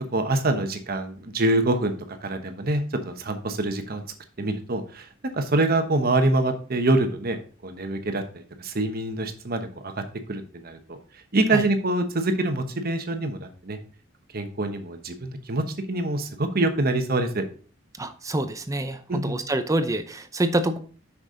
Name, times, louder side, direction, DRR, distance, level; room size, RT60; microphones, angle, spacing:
voice 1, 0.1-4.0 4.4-5.1 5.3-7.4 7.6-13.8 14.3-17.4 19.1-19.4, right 2 dB, 50° right, 7 dB, 1.0 m, -25 dB
voice 2, 18.0-20.8, right 1 dB, 15° right, 9 dB, 0.6 m, -26 dB
6.5 x 6.0 x 3.8 m, 0.41 s
head